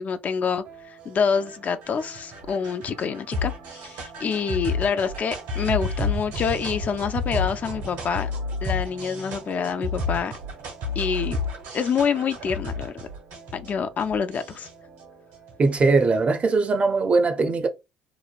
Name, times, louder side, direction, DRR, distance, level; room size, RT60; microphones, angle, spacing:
voice 1, 0.0-8.3 8.6-10.3 11.0-11.4 11.7-13.0 13.5-14.7, left 6 dB, 45° left, 0.4 m, -27 dB
sound 1, 0.6-16.2, left 2 dB, 80° right, 1.4 m, -32 dB
voice 2, 15.6-17.7, right 3 dB, 35° right, 0.6 m, -20 dB
3.0 x 2.2 x 2.4 m
supercardioid pair, 70°, 4 cm